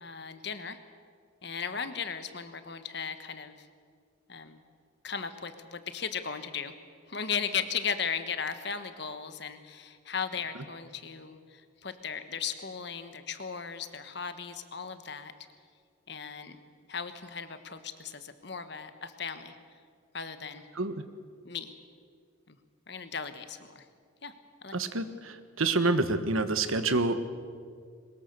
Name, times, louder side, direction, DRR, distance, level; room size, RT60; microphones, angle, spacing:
voice 1, 0.0-0.8 1.4-3.7 4.3-4.6 5.0-6.7 7.1-15.3 16.1-16.6 16.9-19.5 20.1-20.7 21.4-21.7 22.5-22.6 22.9-23.9 24.2-24.3 24.6-24.7, left 6 dB, 55° left, 10 dB, 1.4 m, -36 dB
voice 2, 24.7-27.2, right 3 dB, 85° right, 10 dB, 1.4 m, -27 dB
22.0 x 20.5 x 6.9 m, 2.1 s
head